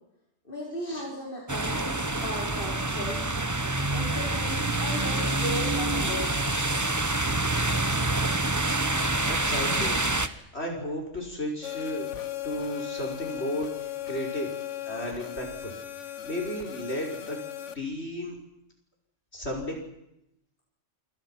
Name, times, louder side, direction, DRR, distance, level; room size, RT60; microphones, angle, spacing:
voice 1, 0.4-3.2 3.9-6.6, left 1 dB, 45° left, -3 dB, 4.7 m, -36 dB
sound 1, 1.5-10.3, right 2 dB, 15° right, 1.1 m, -27 dB
voice 2, 9.2-10.0 10.5-12.1 12.4-14.5 14.9-15.7 16.0-17.4 17.7-18.4 19.3-19.8, equal, 65° left, 0 dB, 6.5 m, -34 dB
sound 2, 11.6-17.7, left 12 dB, 85° left, 1.5 m, -37 dB
28.0 x 27.0 x 6.0 m, 0.84 s
omnidirectional pair, 1.2 m